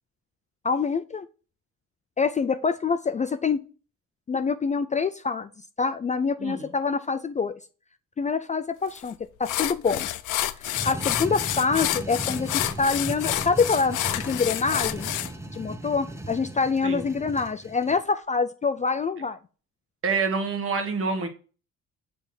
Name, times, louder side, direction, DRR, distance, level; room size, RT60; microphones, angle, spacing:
voice 1, 0.6-1.3 2.2-3.6 4.3-5.5 5.8-7.5 8.2-10.1 10.8-14.0 14.3-15.1 15.5-19.4, left 5 dB, 25° left, 0.3 m, -25 dB
sound 1, 9.0-9.1 9.5-15.3, left 14 dB, 85° left, 0.5 m, -29 dB
sound 2, 10.6-18.0, right 2 dB, 10° right, 0.7 m, -37 dB
voice 2, 20.0-21.3, right 4 dB, 45° right, 1.4 m, -27 dB
6.9 x 3.4 x 4.4 m
cardioid pair, 90°, 30 cm